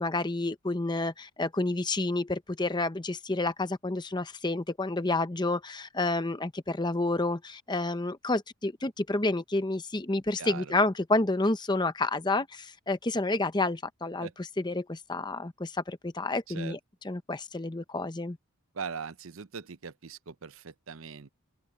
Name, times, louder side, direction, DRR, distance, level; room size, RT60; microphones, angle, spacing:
voice 1, 0.0-16.8 17.0-18.4, left 2 dB, 20° left, 0.8 m, -29 dB
voice 2, 10.4-10.7 14.2-14.3 16.5-16.8 18.7-21.3, right 6 dB, 65° right, 0.7 m, -40 dB
open air
head